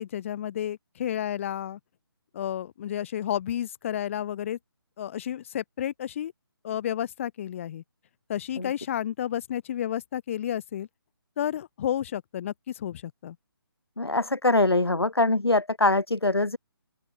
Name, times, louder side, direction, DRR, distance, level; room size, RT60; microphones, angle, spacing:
voice 1, 0.0-1.8 2.3-4.6 5.0-6.3 6.6-7.8 8.3-10.9 11.4-13.4, left 10 dB, 30° left, 4.3 m, -31 dB
voice 2, 14.0-16.6, left 2 dB, 80° left, 2.4 m, -23 dB
open air
figure-of-eight pair, 150°, 13 cm